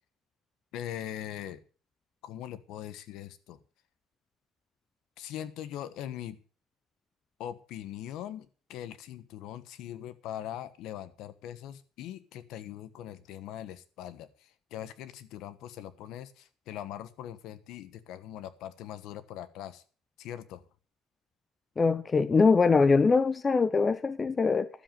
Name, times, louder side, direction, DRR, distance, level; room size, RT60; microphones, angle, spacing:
voice 1, 0.7-1.6 2.2-3.6 5.2-6.4 7.4-19.8 20.2-20.6, left 11 dB, 65° left, 1.2 m, -41 dB
voice 2, 21.8-24.7, left 4 dB, 20° left, 0.5 m, -23 dB
12.5 x 7.6 x 7.5 m
cardioid pair, 155°, 0 cm